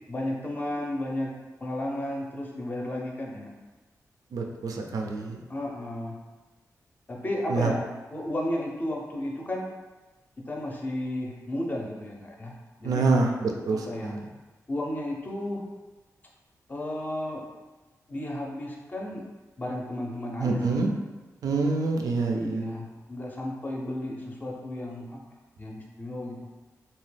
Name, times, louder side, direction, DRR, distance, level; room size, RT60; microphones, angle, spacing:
voice 1, 0.1-1.3 1.6-3.5 5.5-6.2 7.1-7.8 8.1-9.6 10.4-12.5 12.8-13.0 13.7-14.2 14.7-15.6 16.7-17.4 18.1-19.2 19.6-20.8 22.3-25.2 25.6-26.4, left 1 dB, 30° left, -1 dB, 0.5 m, -33 dB
voice 2, 4.3-5.4 7.5-7.7 12.8-14.2 20.4-20.9 21.4-22.7, right 3 dB, 75° right, 2 dB, 0.3 m, -26 dB
2.7 x 2.2 x 3.2 m, 1.2 s
wide cardioid pair, 115°, 6 cm